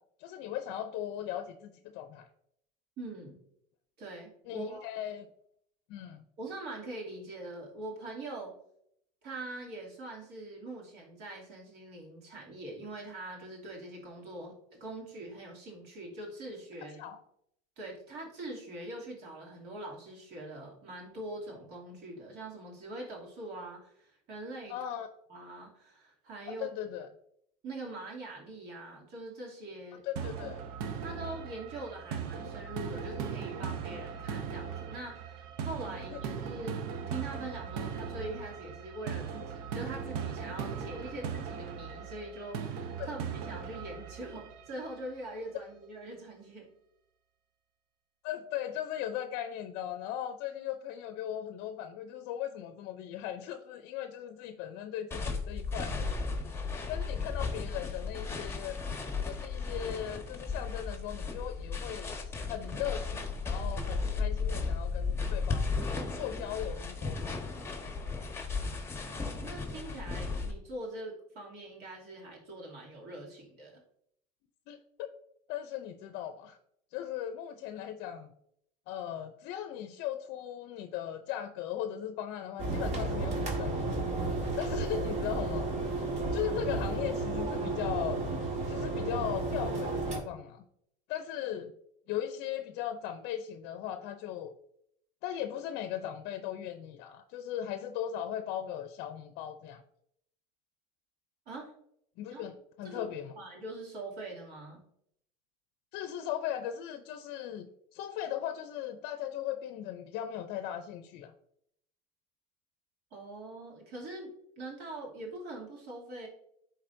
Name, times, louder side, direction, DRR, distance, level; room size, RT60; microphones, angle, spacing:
voice 1, 0.2-2.3 4.5-5.3 5.9-6.2 17.0-17.2 24.7-25.1 26.5-27.1 30.0-30.6 36.1-36.2 43.0-43.1 48.2-56.6 56.9-58.8 59.2-65.8 66.2-67.6 74.7-75.1 75.5-76.6 76.9-78.3 78.9-83.9 84.6-85.7 86.3-88.3 88.7-90.6 91.1-91.7 92.1-94.5 95.2-99.8 102.2-103.3 105.9-111.3, left 10 dB, 65° left, 9 dB, 0.5 m, -38 dB
voice 2, 3.0-3.4 4.0-4.9 6.4-8.6 9.2-17.2 17.8-24.8 25.3-26.7 27.6-30.3 31.0-46.7 69.0-73.8 101.5-101.7 102.3-102.5 102.8-103.1 103.4-104.8 113.1-116.3, right 2 dB, 65° right, -2 dB, 2.6 m, -43 dB
sound 1, 30.2-45.1, right 7 dB, 80° right, 0.8 m, -39 dB
sound 2, 55.1-70.5, left 4 dB, 15° left, 1.2 m, -35 dB
sound 3, 82.6-90.2, right 3 dB, 40° right, 1.7 m, -32 dB
10.5 x 4.0 x 2.6 m, 0.72 s
supercardioid pair, 105°, 19 cm